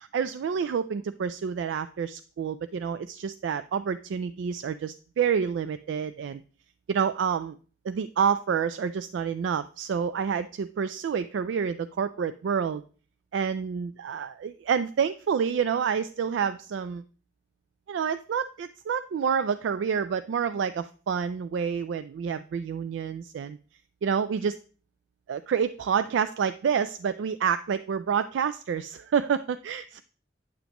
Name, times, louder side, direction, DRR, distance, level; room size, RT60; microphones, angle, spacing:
voice 1, 0.0-6.4 6.9-7.6 7.8-12.8 13.3-17.0 17.9-23.6 24.0-24.6 25.3-30.0, right 7 dB, 80° right, 12 dB, 0.3 m, -28 dB
9.3 x 7.0 x 3.0 m, 0.40 s
head